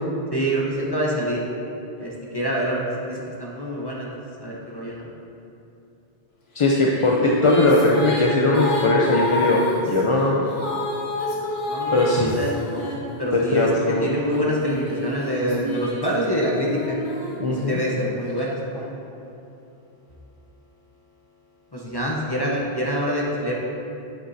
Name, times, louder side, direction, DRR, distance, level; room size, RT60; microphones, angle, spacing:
voice 1, 0.3-1.4 2.0-4.1 4.4-5.1 11.3-12.9 13.2-17.0 17.5-19.0 21.7-23.5, equal, 25° left, -5 dB, 0.8 m, -26 dB
voice 2, 6.5-10.4 11.9-12.4 13.3-14.1 17.4-17.8, left 2 dB, 40° left, -2 dB, 0.5 m, -19 dB
Female singing, 6.6-13.6 14.3-18.0, left 1 dB, 90° left, 1.7 m, -29 dB
9.0 x 7.2 x 2.7 m, 2.8 s
omnidirectional pair, 1.0 m